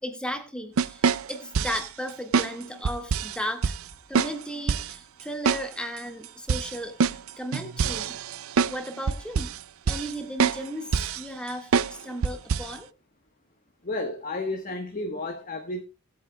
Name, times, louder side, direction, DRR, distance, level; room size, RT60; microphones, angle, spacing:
voice 1, 0.0-3.8 4.1-8.2 8.7-9.5 9.9-12.9, equal, 5° left, 1.8 m, -35 dB
sound 1, 0.8-1.9 2.3-2.5 2.8-3.4 3.6-3.8 4.1-4.3 4.7-4.9 5.5-5.6 6.0-6.1 6.5-8.8 9.1-9.6 9.9-10.1 10.4-10.6 10.9-11.2 11.7-11.9 12.2-12.7, right 5 dB, 65° right, 0.5 m, -25 dB
voice 2, 13.8-15.8, left 2 dB, 35° left, 1.2 m, -32 dB
19.5 x 8.5 x 2.3 m
head